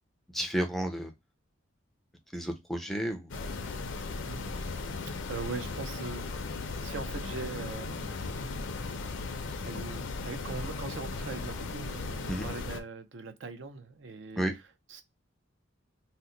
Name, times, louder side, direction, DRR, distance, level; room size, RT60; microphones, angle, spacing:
voice 1, 0.3-1.1 2.3-3.3 12.3-12.4 14.4-14.6, right 1 dB, ahead, 0.4 m, -32 dB
sound 1, 3.3-12.8, left 3 dB, 65° left, 0.5 m, -37 dB
voice 2, 4.3-4.6 5.0-8.3 9.6-14.4 14.9-15.0, right 4 dB, 65° right, 0.5 m, -41 dB
2.8 x 2.1 x 3.7 m
head